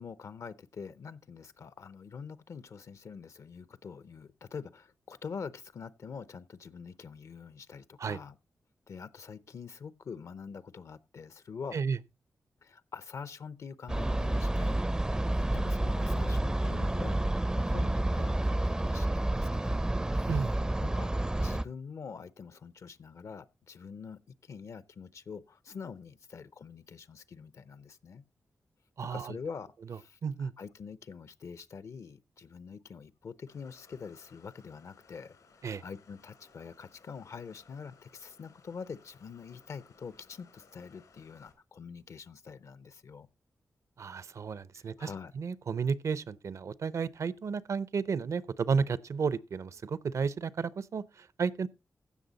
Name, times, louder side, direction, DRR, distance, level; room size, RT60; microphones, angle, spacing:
voice 1, 0.0-8.4 8.9-11.8 12.6-14.8 15.3-20.3 20.8-21.1 21.4-28.2 29.0-35.4 35.6-43.3 44.7-45.3, left 5 dB, 65° left, 0.6 m, -45 dB
sound 1, 13.9-21.6, right 1 dB, 15° right, 0.4 m, -29 dB
voice 2, 29.0-29.3 30.2-30.5 35.6-35.8 44.0-45.1 45.3-51.7, right 5 dB, 65° right, 0.6 m, -32 dB
sound 2, 33.5-41.5, left 5 dB, 85° left, 3.3 m, -62 dB
15.5 x 6.2 x 4.0 m
wide cardioid pair, 100°, 6 cm